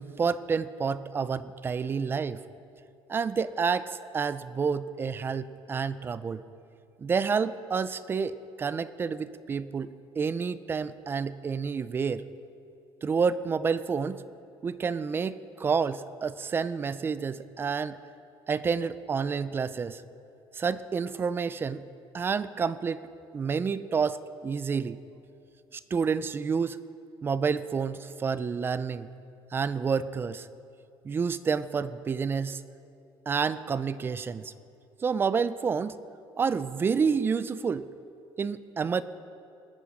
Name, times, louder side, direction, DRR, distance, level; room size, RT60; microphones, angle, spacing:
voice 1, 0.0-2.4 3.1-6.4 7.0-12.2 13.0-14.2 14.6-18.0 18.5-20.0 20.5-21.8 22.1-23.0 23.3-25.0 25.7-26.8 27.2-29.1 29.5-30.5 31.0-32.6 33.3-34.5 35.0-36.0 36.4-37.9 38.4-39.0, right 5 dB, 25° right, 15 dB, 0.4 m, -29 dB
19.5 x 9.8 x 5.0 m, 2.6 s
cardioid pair, 145°, 10 cm